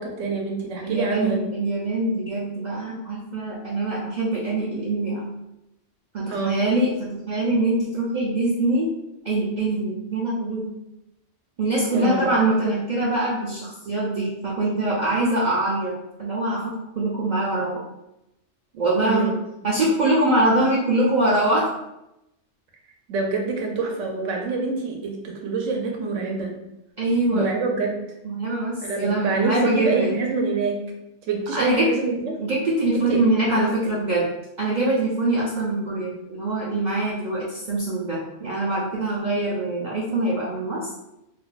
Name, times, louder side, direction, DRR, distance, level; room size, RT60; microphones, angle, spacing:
voice 1, 0.0-1.4 6.3-6.6 11.9-12.3 19.0-19.4 23.1-26.5 27.3-28.0 28.8-30.8 31.3-32.3 32.9-33.2, right 4 dB, 80° right, 1 dB, 1.0 m, -26 dB
voice 2, 0.8-5.3 6.1-8.9 9.2-10.7 11.6-17.8 18.7-19.3 19.6-21.7 27.0-27.5 28.2-30.2 31.5-31.9 32.4-34.3 34.6-40.9, right 2 dB, 60° right, -5 dB, 0.5 m, -23 dB
2.5 x 2.2 x 3.9 m, 0.87 s
omnidirectional pair, 1.3 m